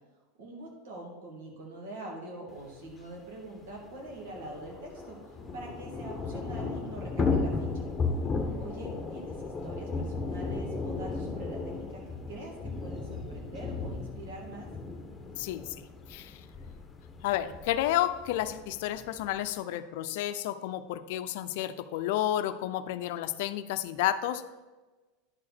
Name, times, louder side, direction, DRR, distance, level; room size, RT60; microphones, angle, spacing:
voice 1, 0.4-7.9 8.6-12.0 12.3-14.7, right 1 dB, 75° right, -1 dB, 2.4 m, -44 dB
Thunder / Rain, 2.9-3.0 3.2-3.3 3.6-19.5, left 4 dB, 15° left, 1.1 m, -35 dB
voice 2, 15.4-16.4 17.2-24.4, left 12 dB, 70° left, 12 dB, 0.5 m, -31 dB
10.5 x 4.9 x 4.2 m, 1.2 s
supercardioid pair, 120°, 0 cm